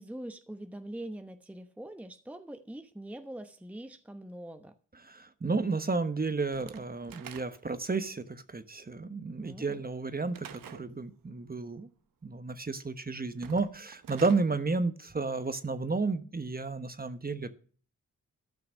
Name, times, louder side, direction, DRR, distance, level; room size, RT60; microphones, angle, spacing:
voice 1, 0.0-4.7 9.4-9.8, right 1 dB, 5° right, 7 dB, 0.9 m, -43 dB
voice 2, 5.0-11.9 12.2-17.6, right 3 dB, 25° right, 10 dB, 1.1 m, -32 dB
Slam / Wood, 6.5-7.8 10.3-10.9 13.3-14.5, right 9 dB, 85° right, 0.9 m, -48 dB
13.0 x 5.9 x 6.3 m, 0.42 s
cardioid pair, 65°, 33 cm